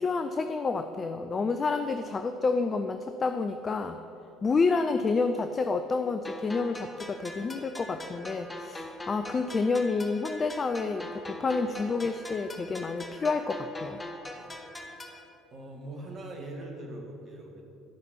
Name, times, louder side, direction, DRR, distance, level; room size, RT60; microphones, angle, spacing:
voice 1, 0.0-4.0 4.4-14.0, left 4 dB, 30° left, 8 dB, 0.5 m, -29 dB
sound 1, 6.2-15.2, left 1 dB, 10° left, 1.1 m, -42 dB
voice 2, 15.5-17.6, right 1 dB, 40° right, 0 dB, 2.0 m, -41 dB
10.5 x 5.9 x 8.4 m, 2.9 s
figure-of-eight pair, 60°, 0 cm